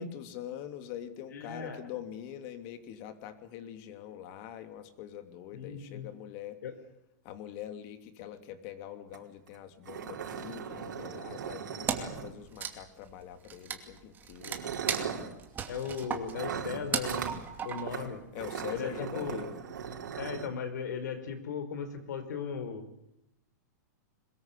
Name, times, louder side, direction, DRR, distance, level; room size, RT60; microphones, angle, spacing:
voice 1, 0.0-6.6 7.2-14.6 18.3-19.6, left 10 dB, 40° left, 10 dB, 2.9 m, -44 dB
voice 2, 1.3-1.8 5.5-6.1 6.6-6.7 15.7-17.3 17.6-18.2 18.7-19.4 20.2-22.8, left 6 dB, 75° left, 10 dB, 4.6 m, -37 dB
sound 1, 9.1-9.2 9.5-9.6 9.8-12.6 13.6-13.8 14.4-15.3 16.3-17.4 17.9-18.1 18.3-20.5, right 7 dB, 85° right, 4.6 m, -38 dB
Wood, 11.9-12.2 12.5-18.1, right 7 dB, 20° right, 2.6 m, -36 dB
23.0 x 21.0 x 8.5 m, 0.81 s
hypercardioid pair, 145°, 10 cm